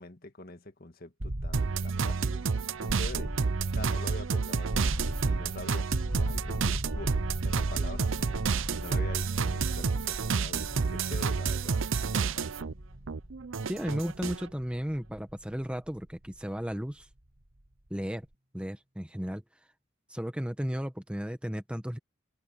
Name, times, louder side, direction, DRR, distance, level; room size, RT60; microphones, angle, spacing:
voice 1, 0.0-2.4 2.8-3.3 3.7-8.4 8.8-11.8 12.1-12.7, left 2 dB, 45° left, 1.9 m, -44 dB
sound 1, 1.2-17.0, right 1 dB, 55° right, 1.7 m, -38 dB
sound 2, 1.5-12.7 13.1-14.5, right 5 dB, 75° right, 0.7 m, -30 dB
sound 3, 10.7-18.4, equal, 35° right, 5.0 m, -60 dB
voice 2, 13.7-17.1 17.9-18.3 18.5-19.4 20.1-22.0, equal, 5° right, 1.1 m, -34 dB
open air
head